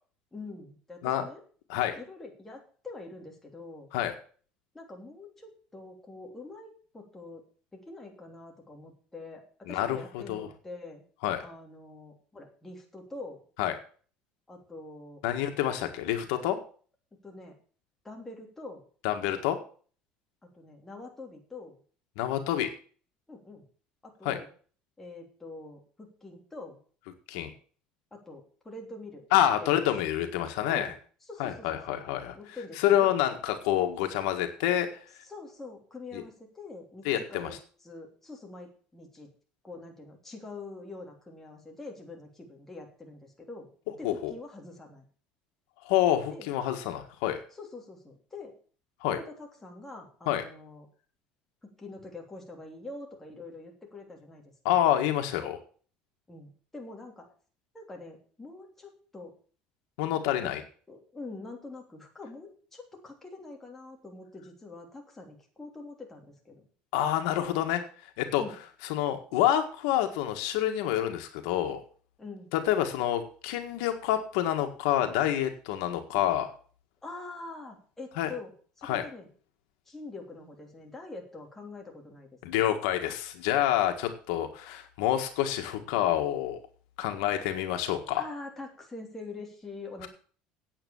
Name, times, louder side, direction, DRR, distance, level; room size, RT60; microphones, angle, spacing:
voice 1, 0.3-1.4 1.9-3.9 4.7-7.4 7.7-11.0 11.4-13.4 14.5-15.2 17.2-17.5 18.0-18.8 20.5-21.8 23.3-23.6 24.0-24.5 25.0-26.8 28.1-29.8 30.7-31.0 31.3-32.0 32.3-33.2 35.2-37.6 37.8-39.3 39.6-43.7 44.0-45.0 46.3-46.5 47.5-48.5 49.0-50.9 51.6-54.8 56.3-57.3 57.7-59.3 60.1-60.5 60.9-66.6 68.4-68.5 72.2-72.5 77.0-79.3 79.9-82.3 88.2-90.1, left 2 dB, 10° left, 0 dB, 3.1 m, -45 dB
voice 2, 9.7-10.5 11.2-11.4 13.6-13.7 15.2-16.6 19.0-19.6 22.2-22.7 24.2-24.4 27.3-27.5 29.3-30.9 31.4-32.3 32.8-34.9 36.1-36.2 37.0-37.5 44.0-44.3 45.8-47.4 49.0-49.2 50.3-50.4 54.6-55.6 60.0-60.6 66.9-67.8 68.2-68.4 68.9-71.8 72.5-76.5 78.2-78.3 78.8-79.0 82.4-86.6 87.0-88.2, left 12 dB, 90° left, 6 dB, 1.7 m, -27 dB
9.0 x 8.5 x 7.1 m, 0.43 s
cardioid pair, 135°, 3 cm